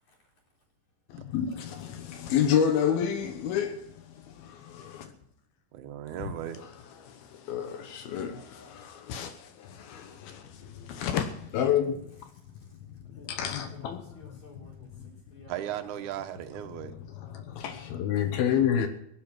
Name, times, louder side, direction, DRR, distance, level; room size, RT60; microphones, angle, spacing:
voice 1, 1.1-5.1 7.0-12.1 12.9-14.0 17.3-18.9, left 8 dB, 75° left, 2.9 m, -30 dB
voice 2, 5.7-6.7 15.5-17.0, right 11 dB, 70° right, 2.1 m, -36 dB
voice 3, 12.3-12.7 13.1-16.2, left 2 dB, 45° left, 5.2 m, -54 dB
18.0 x 11.5 x 6.1 m
omnidirectional pair, 4.5 m